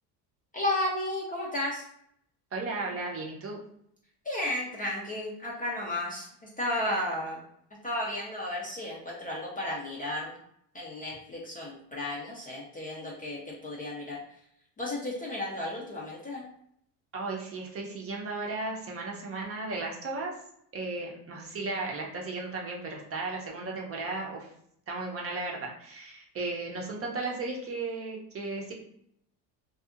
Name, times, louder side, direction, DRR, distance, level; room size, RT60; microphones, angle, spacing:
voice 1, 0.5-1.8 4.3-6.3 6.6-7.4 7.8-10.3 10.7-14.2 14.8-16.5, left 1 dB, 20° left, -3 dB, 0.4 m, -33 dB
voice 2, 2.5-3.6 17.1-20.3 20.7-24.5 24.9-28.7, right 3 dB, 35° right, -1 dB, 0.6 m, -35 dB
2.7 x 2.4 x 2.4 m, 0.71 s
cardioid pair, 115°, 43 cm